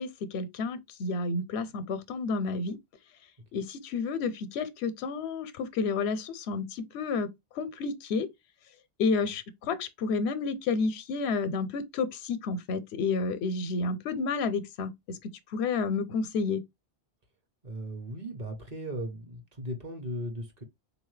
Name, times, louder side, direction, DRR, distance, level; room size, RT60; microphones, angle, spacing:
voice 1, 0.0-2.8 3.5-7.3 7.6-8.3 9.0-15.2 15.5-16.6, left 4 dB, 80° left, 0.8 m, -30 dB
voice 2, 17.6-20.6, equal, 40° right, 0.9 m, -37 dB
3.9 x 2.7 x 3.1 m
omnidirectional pair, 1.1 m